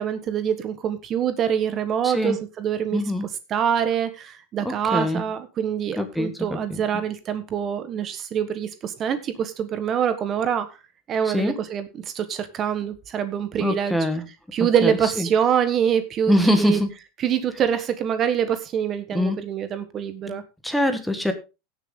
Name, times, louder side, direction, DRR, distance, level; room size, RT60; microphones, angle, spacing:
voice 1, 0.0-3.0 3.5-10.7 11.1-11.9 12.1-14.0 14.5-16.8 17.2-20.4, right 8 dB, 30° right, 10 dB, 1.3 m, -25 dB
voice 2, 2.0-2.4 2.9-3.3 4.6-5.2 6.0-6.8 11.2-11.6 13.6-14.2 14.8-15.3 16.3-16.9 19.1-19.4 20.3-21.3, left 1 dB, ahead, 8 dB, 1.4 m, -24 dB
16.5 x 7.0 x 3.8 m, 0.28 s
supercardioid pair, 145°, 0 cm